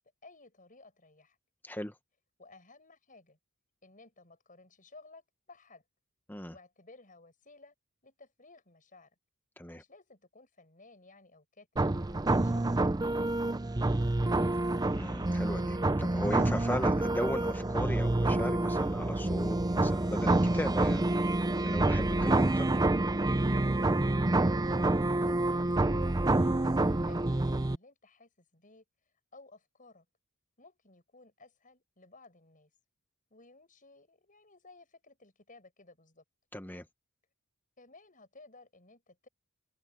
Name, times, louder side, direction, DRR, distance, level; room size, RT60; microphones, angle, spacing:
voice 1, 0.2-1.4 2.4-3.4 3.8-5.8 6.5-7.7 8.0-9.1 9.7-11.8 12.3-13.5 13.8-14.6 24.2-24.6 25.3-28.8 29.3-30.1 30.6-32.7 33.3-36.2 37.8-39.3, left 3 dB, 35° left, 7.2 m, -57 dB
voice 2, 1.6-1.9 6.3-6.5 9.6-9.8 14.9-22.7 36.5-36.8, left 1 dB, 10° left, 1.3 m, -37 dB
sound 1, 11.8-27.8, right 2 dB, 15° right, 0.5 m, -28 dB
head